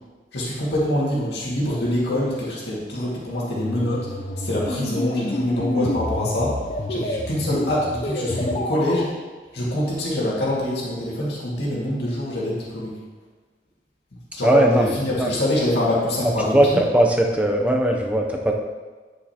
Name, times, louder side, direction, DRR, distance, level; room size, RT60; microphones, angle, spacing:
voice 1, 0.3-6.6 6.9-9.1 9.5-13.0 14.3-16.8, left 1 dB, 70° left, -6 dB, 2.1 m, -25 dB
sound 1, 3.6-9.1, left 1 dB, 40° left, 0.5 m, -28 dB
voice 2, 14.4-15.3 16.5-18.5, right 1 dB, 5° right, 1 dB, 0.6 m, -19 dB
9.4 x 6.4 x 2.9 m, 1.4 s
head